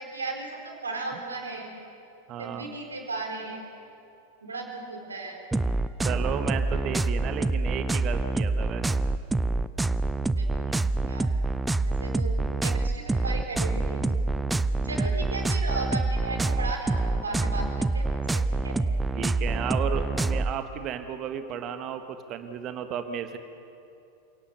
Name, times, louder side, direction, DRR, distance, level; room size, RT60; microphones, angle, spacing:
voice 1, 0.0-1.7 2.4-3.6 4.4-5.4 10.4-10.7 11.0-11.3 11.8-14.3 14.8-18.1 18.3-18.8, right 3 dB, 75° right, 2 dB, 4.2 m, -35 dB
voice 2, 2.3-2.7 6.0-8.8 10.7-10.9 14.7-15.1 19.1-23.4, right 8 dB, 35° right, 8 dB, 1.6 m, -34 dB
sound 1, 5.5-20.5, right 2 dB, 10° right, 0.6 m, -26 dB
28.0 x 17.5 x 7.0 m, 2.7 s
figure-of-eight pair, 90°, 0 cm